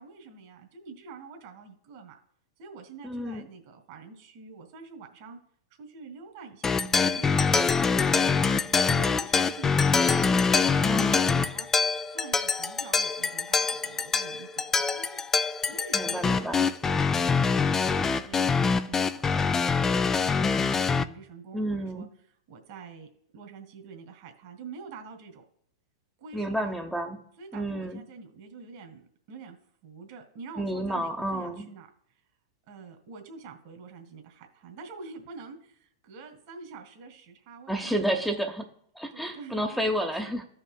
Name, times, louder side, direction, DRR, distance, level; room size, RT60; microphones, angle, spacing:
voice 1, 0.0-2.2 2.6-5.4 5.8-10.2 10.6-11.7 12.0-17.1 17.4-22.1 22.5-25.4 26.2-26.7 27.4-29.6 29.8-31.9 32.7-38.3 39.1-40.3, right 4 dB, 50° right, 5 dB, 1.8 m, -46 dB
voice 2, 3.0-3.4 10.8-11.2 15.9-16.7 21.5-22.1 26.3-27.2 27.5-28.0 30.6-31.6 37.7-38.7 39.0-40.4, right 1 dB, ahead, 1 dB, 0.9 m, -30 dB
sound 1, 6.6-21.0, left 5 dB, 15° left, 0.4 m, -25 dB
15.0 x 5.5 x 2.3 m, 0.66 s
hypercardioid pair, 105°, 2 cm